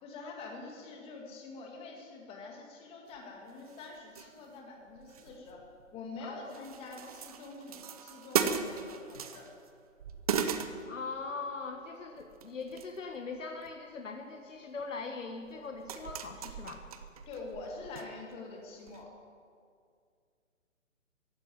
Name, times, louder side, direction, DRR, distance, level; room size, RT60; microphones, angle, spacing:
voice 1, 0.0-5.6 5.9-9.5 17.3-19.1, left 3 dB, 15° left, 1 dB, 2.1 m, -45 dB
sound 1, 3.1-3.2 3.6-4.6 4.9-6.2 6.5-9.7 10.0-11.4 12.2-13.0 13.3-13.8 14.8-14.9 15.5-18.1 18.3-18.4 18.9-19.0, right 7 dB, 30° right, 0.8 m, -37 dB
voice 2, 10.9-16.8, left 4 dB, 70° left, 4 dB, 1.5 m, -41 dB
15.0 x 9.8 x 9.6 m, 2.2 s
hypercardioid pair, 145°, 39 cm